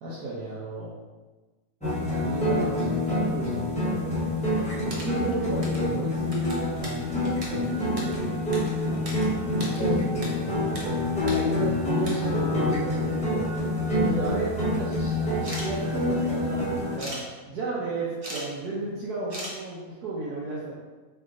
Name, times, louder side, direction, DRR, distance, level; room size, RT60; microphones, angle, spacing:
voice 1, 0.0-0.9 2.1-4.3 4.8-6.8 7.2-8.2 8.9-13.5 13.9-20.7, right 3 dB, 85° right, -6 dB, 1.2 m, -34 dB
sound 1, 1.8-17.0, left 1 dB, 5° left, 0.7 m, -27 dB
sound 2, 4.9-5.9 6.2-9.2 9.5-10.3 10.6-10.8 11.2-11.4 11.8-12.2 13.1-13.2 13.6-14.2 15.4-15.7 17.0-17.2 18.0-18.5 18.7-18.8 19.3-19.6, equal, 40° right, 0.5 m, -38 dB
3.4 x 2.9 x 3.6 m, 1.2 s
omnidirectional pair, 1.6 m